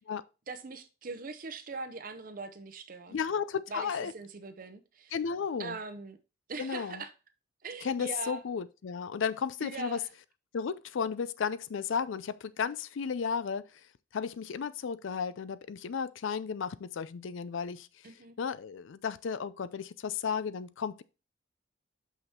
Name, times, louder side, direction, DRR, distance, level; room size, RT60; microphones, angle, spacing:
voice 1, 0.5-3.2 3.7-5.1 5.6-6.2 6.5-7.1 7.6-8.4 9.6-10.1 18.0-18.4, right 4 dB, 45° right, 0.6 m, -41 dB
voice 2, 3.1-4.1 5.1-5.8 6.6-7.0 7.8-10.0 10.5-13.8 14.1-21.0, left 6 dB, 75° left, 0.4 m, -34 dB
6.0 x 5.5 x 4.2 m
head